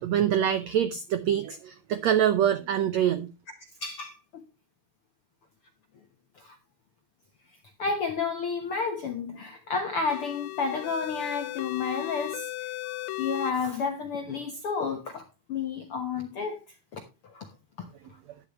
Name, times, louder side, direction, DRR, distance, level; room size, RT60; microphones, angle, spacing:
voice 1, 0.0-3.3, right 10 dB, 85° right, 1.5 m, -25 dB
voice 2, 3.8-4.4 6.4-6.6 7.8-12.5 12.8-16.6 16.9-17.5, left 5 dB, 65° left, 1.3 m, -31 dB
sound 1, 10.1-13.5, left 15 dB, 90° left, 2.7 m, -36 dB
11.5 x 11.0 x 3.1 m
omnidirectional pair, 4.2 m